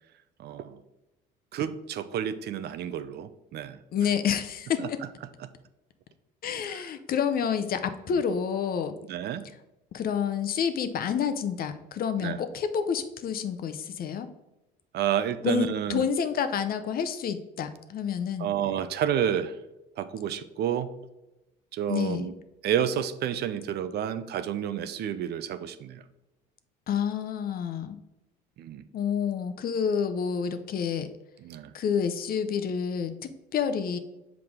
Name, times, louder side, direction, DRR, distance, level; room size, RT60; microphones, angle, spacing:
voice 1, 0.4-0.8 1.5-3.8 4.8-4.9 6.7-6.8 9.1-9.4 12.2-12.4 14.9-16.0 18.4-19.5 20.0-20.9 21.7-22.3 22.6-26.0 28.6-28.8 31.4-31.7, right 9 dB, 55° right, 13 dB, 0.6 m, -30 dB
voice 2, 3.9-5.0 6.4-8.9 9.9-14.3 15.4-18.5 21.9-22.3 26.9-28.0 28.9-31.1 31.7-34.0, left 7 dB, 50° left, 10 dB, 0.7 m, -29 dB
6.1 x 4.7 x 3.7 m, 0.97 s
supercardioid pair, 80°, 20 cm